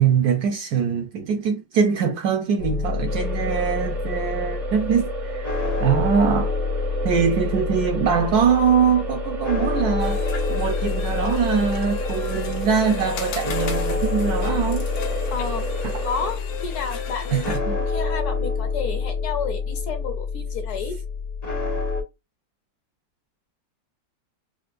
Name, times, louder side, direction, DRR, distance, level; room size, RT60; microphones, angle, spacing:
voice 1, 0.0-6.5 7.0-10.2 10.5-14.9 17.3-17.8, right 7 dB, 70° right, 0.9 m, -22 dB
sound 1, 2.6-22.0, left 4 dB, 45° left, 0.5 m, -27 dB
sound 2, 3.1-16.3, right 5 dB, 40° right, 0.5 m, -33 dB
sound 3, 10.0-17.6, left 6 dB, 85° left, 1.5 m, -35 dB
voice 2, 15.3-15.7 16.0-21.0, left 6 dB, 70° left, 1.1 m, -31 dB
4.4 x 2.3 x 2.4 m
omnidirectional pair, 2.0 m